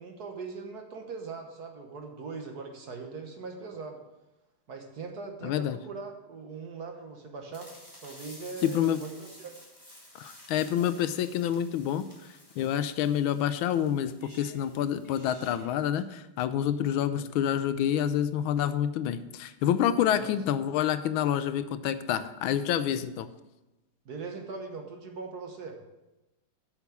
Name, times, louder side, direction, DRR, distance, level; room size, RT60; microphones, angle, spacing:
voice 1, 0.0-4.0 4.7-7.7 8.0-9.5 17.1-17.3 20.1-20.3 24.0-25.8, right 4 dB, 55° right, 3 dB, 1.4 m, -41 dB
voice 2, 5.4-5.8 8.6-9.0 10.1-12.0 12.6-14.1 14.4-23.3, left 10 dB, 80° left, 12 dB, 1.3 m, -28 dB
sound 1, 7.5-16.0, equal, 10° left, 2.8 m, -52 dB
8.3 x 5.9 x 7.0 m, 1.0 s
omnidirectional pair, 2.3 m